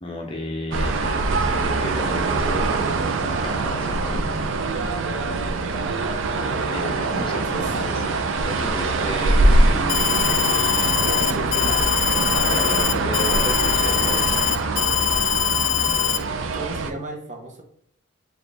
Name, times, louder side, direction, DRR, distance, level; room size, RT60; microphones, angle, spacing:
voice 1, 0.0-4.4 6.7-10.9 11.2-11.3 12.3-14.4, left 1 dB, 25° left, 0 dB, 0.6 m, -33 dB
sound 1, 0.7-16.9, right 3 dB, 70° right, 0.4 m, -23 dB
voice 2, 7.1-7.7 11.0-11.9 16.5-17.6, right 2 dB, 40° right, 2 dB, 0.7 m, -34 dB
Alarm, 9.9-16.2, left 12 dB, 75° left, 0.3 m, -22 dB
4.1 x 2.4 x 3.3 m, 0.70 s
head